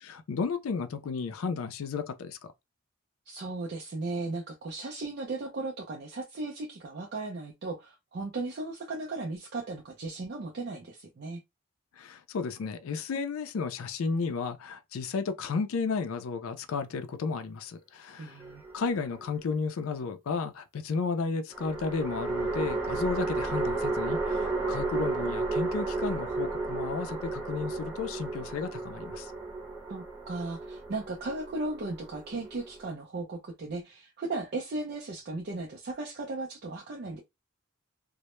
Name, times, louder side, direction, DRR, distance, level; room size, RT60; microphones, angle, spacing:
voice 1, 0.0-2.4 12.0-18.4 18.7-29.3, left 5 dB, 80° left, 0.4 m, -33 dB
voice 2, 3.3-11.4 18.2-18.6 29.9-37.2, right 2 dB, 50° right, 0.4 m, -36 dB
sound 1, 18.4-19.3 21.5-32.9, right 3 dB, 10° right, 0.7 m, -33 dB
2.1 x 2.0 x 2.9 m
head